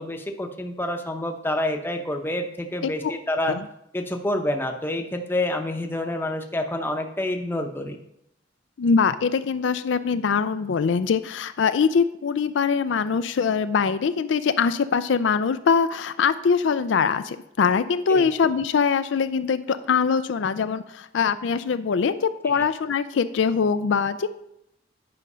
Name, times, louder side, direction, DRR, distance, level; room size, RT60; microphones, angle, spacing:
voice 1, 0.0-3.6 3.9-8.0 18.1-18.3 22.5-22.6, left 1 dB, 10° left, 4 dB, 0.7 m, -28 dB
voice 2, 8.8-24.3, left 6 dB, 75° left, 12 dB, 0.4 m, -23 dB
9.8 x 5.1 x 5.5 m, 0.80 s
head